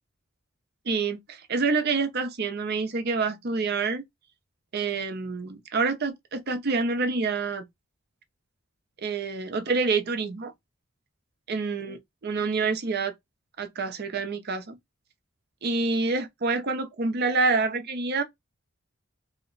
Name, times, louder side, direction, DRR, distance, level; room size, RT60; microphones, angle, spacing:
voice 1, 0.9-4.0 4.7-7.6 9.0-10.5 11.5-12.0 12.2-13.1 13.6-14.8 15.6-18.2, right 4 dB, 50° right, 0.6 m, -27 dB
2.8 x 2.1 x 3.8 m
head